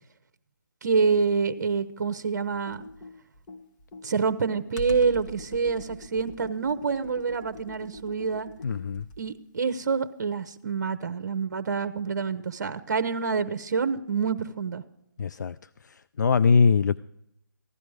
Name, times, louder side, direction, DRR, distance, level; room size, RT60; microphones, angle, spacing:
voice 1, 0.8-2.9 4.0-8.5 9.2-14.8, right 5 dB, 60° right, 11 dB, 0.9 m, -27 dB
Computer keyboard, 2.5-9.4, left 1 dB, 25° left, 1.3 m, -43 dB
voice 2, 8.6-9.0 15.2-15.5 16.2-17.0, left 5 dB, 65° left, 16 dB, 0.4 m, -21 dB
15.5 x 12.0 x 4.8 m, 0.79 s
figure-of-eight pair, 150°, 10 cm